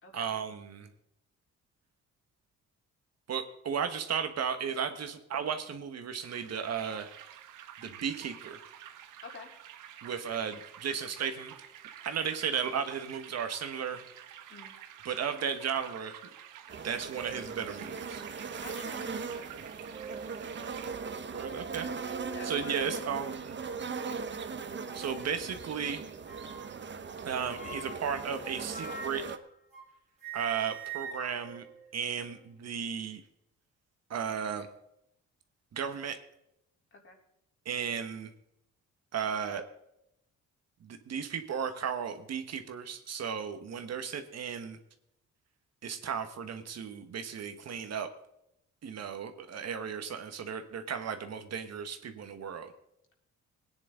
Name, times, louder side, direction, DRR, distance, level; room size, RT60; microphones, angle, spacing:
voice 1, 0.1-0.9 3.3-7.1 7.8-8.6 10.0-11.5 12.0-14.0 15.0-16.2 16.8-18.2 21.3-21.9 22.4-23.6 24.9-26.0 27.2-29.2 30.3-31.6 31.9-33.2 34.1-34.7 35.7-36.2 37.6-38.3 39.1-39.6 40.8-44.8 45.8-48.1 48.8-52.7, right 7 dB, 60° right, 8 dB, 1.5 m, -35 dB
sound 1, 6.2-20.9, right 10 dB, 85° right, 1.3 m, -49 dB
sound 2, 16.7-16.8 17.1-17.5 18.2-18.3 19.6-20.4 20.8-20.9 21.4-21.6 22.2-22.5 23.1-23.9 24.9-25.3 26.2-26.8 27.5-29.9 30.2-32.5, right 5 dB, 20° right, 3.9 m, -45 dB
sound 3, 16.7-29.4, right 5 dB, 40° right, 1.1 m, -39 dB
voice 2, 18.6-19.5 22.3-22.7 36.9-37.2, left 3 dB, 45° left, 1 dB, 3.8 m, -48 dB
18.5 x 9.9 x 3.9 m, 0.79 s
cardioid pair, 90°, 30 cm